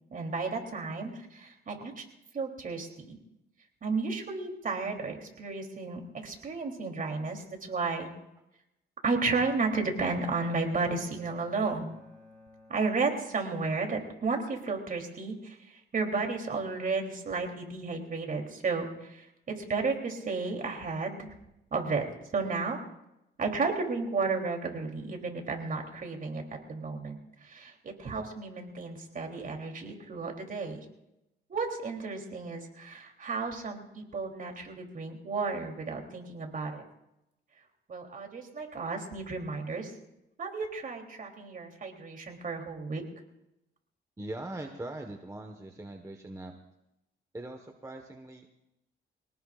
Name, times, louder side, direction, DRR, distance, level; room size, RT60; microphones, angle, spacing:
voice 1, 0.1-2.1 2.3-3.2 3.8-8.1 9.0-11.9 12.7-21.3 21.7-22.1 22.3-22.8 23.4-30.8 31.5-36.8 37.9-39.9 40.4-43.0, right 4 dB, 45° right, 2 dB, 3.4 m, -33 dB
Bowed string instrument, 9.5-13.6, left 3 dB, 10° left, 5.7 m, -55 dB
voice 2, 44.2-46.5 47.3-48.5, right 2 dB, 15° right, 4 dB, 1.4 m, -41 dB
25.0 x 18.0 x 2.5 m, 0.88 s
cardioid pair, 90°, 20 cm